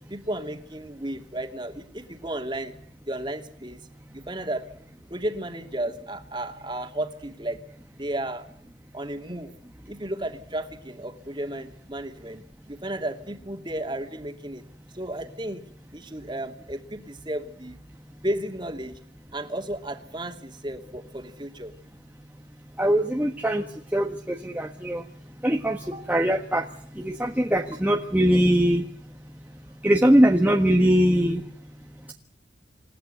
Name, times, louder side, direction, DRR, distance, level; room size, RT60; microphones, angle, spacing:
voice 1, 0.1-2.8 3.1-4.7 5.1-7.6 8.0-8.5 8.9-9.5 9.9-14.6 14.9-15.6 15.9-17.8 18.2-18.9 19.3-21.7 25.8-26.1, right 1 dB, 25° right, 5 dB, 2.7 m, -33 dB
voice 2, 22.8-23.6 23.9-25.0 25.4-25.8 26.1-26.6 27.0-28.8 29.8-31.4, equal, 10° right, 1 dB, 1.5 m, -21 dB
28.0 x 15.0 x 8.0 m, 0.65 s
head